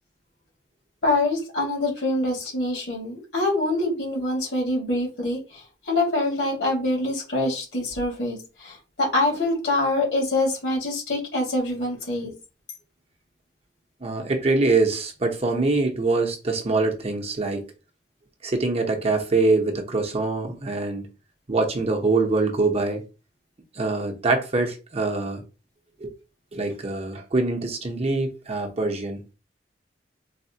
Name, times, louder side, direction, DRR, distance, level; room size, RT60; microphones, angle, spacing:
voice 1, 1.0-12.3, left 2 dB, 75° left, 1.6 m, -25 dB
voice 2, 14.0-17.6 18.4-21.1 21.5-23.0 23.7-25.4 26.0-26.1 26.5-29.2, right 3 dB, 35° right, 0.7 m, -24 dB
4.0 x 2.1 x 2.7 m
head